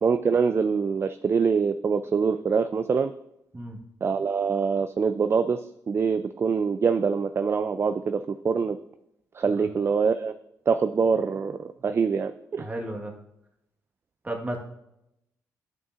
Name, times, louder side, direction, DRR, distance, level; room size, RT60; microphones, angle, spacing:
voice 1, 0.0-3.1 4.0-5.6 5.9-8.8 9.3-10.3 10.7-12.7, right 5 dB, 40° right, 10 dB, 0.3 m, -24 dB
voice 2, 12.6-13.1 14.2-14.7, right 1 dB, 25° right, 1 dB, 1.5 m, -34 dB
9.4 x 5.4 x 2.5 m, 0.83 s
supercardioid pair, 60°, 7 cm